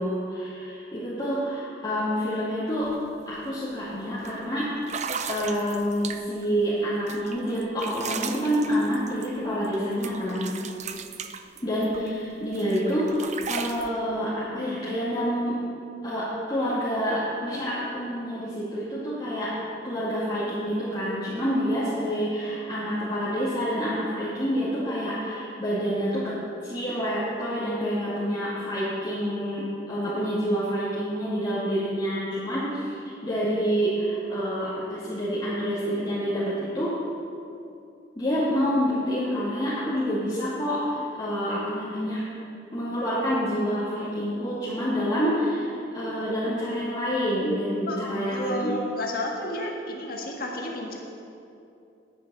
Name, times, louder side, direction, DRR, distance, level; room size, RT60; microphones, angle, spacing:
voice 1, 0.0-2.9 3.3-4.7 5.3-10.5 11.6-15.6 16.0-19.6 19.8-26.4 26.6-36.9 38.2-42.3 42.7-48.8, equal, 25° left, -11 dB, 2.4 m, -27 dB
sound 1, 2.8-3.0 3.3-3.6 4.2-4.3 4.8-6.5 7.1-9.8 10.0-12.1 12.5-13.9, right 6 dB, 40° right, 0.5 m, -36 dB
voice 2, 47.9-51.0, left 1 dB, 55° left, -1 dB, 1.7 m, -32 dB
10.0 x 9.8 x 6.2 m, 2.6 s
head